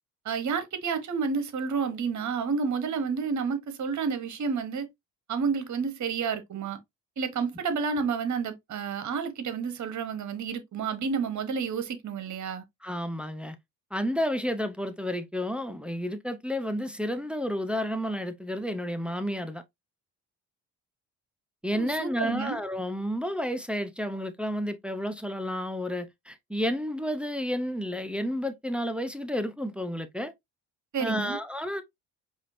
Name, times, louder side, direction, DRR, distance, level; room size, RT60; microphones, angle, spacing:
voice 1, 0.2-4.9 5.3-6.8 7.2-12.6 21.7-22.6 30.9-31.4, right 5 dB, 45° right, 1.1 m, -30 dB
voice 2, 12.8-13.6 13.9-19.6 21.6-30.3 31.0-31.8, equal, 5° right, 0.6 m, -31 dB
4.9 x 2.6 x 2.6 m
supercardioid pair, 60°, 40 cm